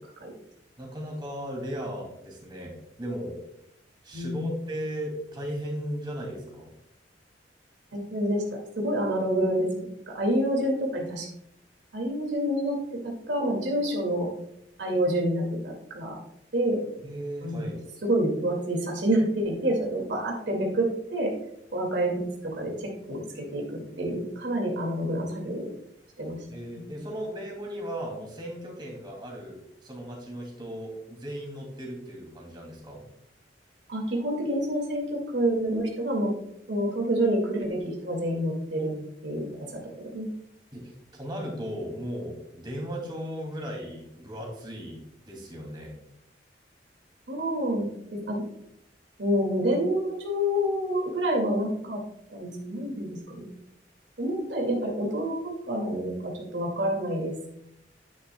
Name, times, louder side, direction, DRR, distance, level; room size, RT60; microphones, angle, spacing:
voice 1, 0.8-2.7 3.0-3.4 4.0-6.7 17.0-17.8 26.5-33.0 40.7-46.0, equal, 25° right, -2 dB, 2.6 m, -36 dB
voice 2, 4.1-4.5 7.9-11.3 11.9-14.3 14.8-16.2 16.5-16.8 17.4-17.7 18.0-21.3 21.7-25.7 26.2-26.4 26.7-26.8 33.9-36.3 36.7-38.9 39.2-39.8 40.1-40.3 47.3-47.8 48.1-48.4 49.2-52.0 52.3-53.4 54.2-57.3, right 1 dB, 80° right, -1 dB, 2.1 m, -28 dB
10.0 x 9.6 x 2.2 m, 0.76 s
head